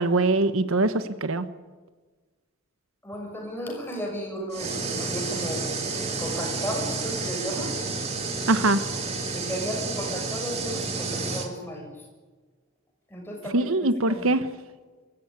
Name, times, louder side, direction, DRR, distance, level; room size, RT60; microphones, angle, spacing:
voice 1, 0.0-1.5 8.5-8.8 13.5-14.4, right 2 dB, 75° right, 12 dB, 1.1 m, -22 dB
voice 2, 3.0-5.7 6.2-7.7 9.3-12.1 13.1-14.3, equal, 10° left, 0 dB, 6.5 m, -34 dB
sound 1, 4.5-11.5, right 3 dB, 30° right, 2.8 m, -30 dB
24.5 x 15.0 x 9.7 m, 1.3 s
head